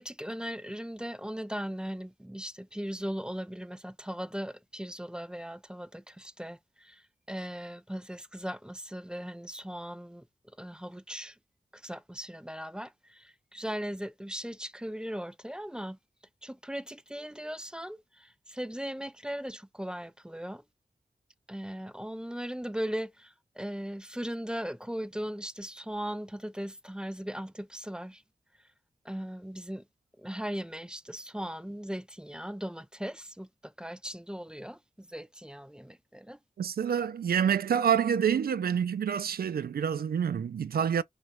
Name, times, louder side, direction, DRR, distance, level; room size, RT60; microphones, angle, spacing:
voice 1, 0.0-7.0 7.3-10.2 10.6-11.4 11.7-16.0 16.4-20.6 21.5-28.2 29.1-29.8 30.2-36.4, equal, 5° right, 0.3 m, -38 dB
voice 2, 36.6-41.0, right 8 dB, 90° right, 0.4 m, -27 dB
3.0 x 2.3 x 2.9 m
wide cardioid pair, 75°, 15 cm